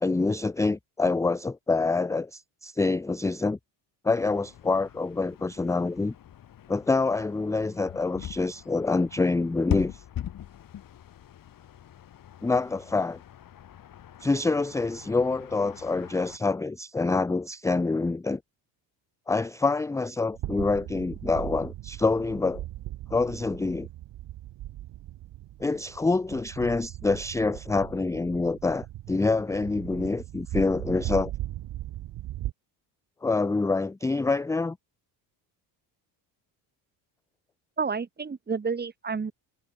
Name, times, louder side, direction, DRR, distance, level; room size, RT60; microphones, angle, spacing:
voice 1, 0.0-3.6 4.0-6.2 6.7-10.0 12.4-13.2 14.2-18.4 19.3-22.6 23.1-23.9 25.6-31.3 33.2-34.8, left 3 dB, 5° left, 0.4 m, -26 dB
sound 1, 4.1-16.4, left 10 dB, 45° left, 2.0 m, -41 dB
sound 2, 20.3-32.5, right 14 dB, 65° right, 5.4 m, -38 dB
voice 2, 37.8-39.3, right 5 dB, 20° right, 1.5 m, -30 dB
cardioid pair, 110°, 45 cm